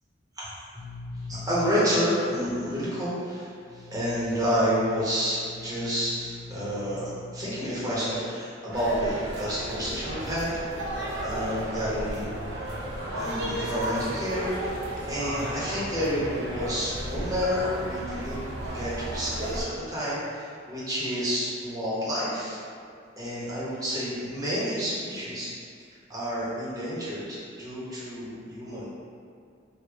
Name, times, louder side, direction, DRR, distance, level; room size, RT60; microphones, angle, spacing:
voice 1, 0.7-10.5 11.2-12.3 13.1-14.8 15.1-18.4 18.7-22.6 23.2-25.5 26.1-28.9, equal, 20° right, -10 dB, 1.0 m, -29 dB
sound 1, 8.7-19.6, right 1 dB, 70° right, 0.5 m, -33 dB
3.4 x 2.3 x 3.4 m, 2.3 s
head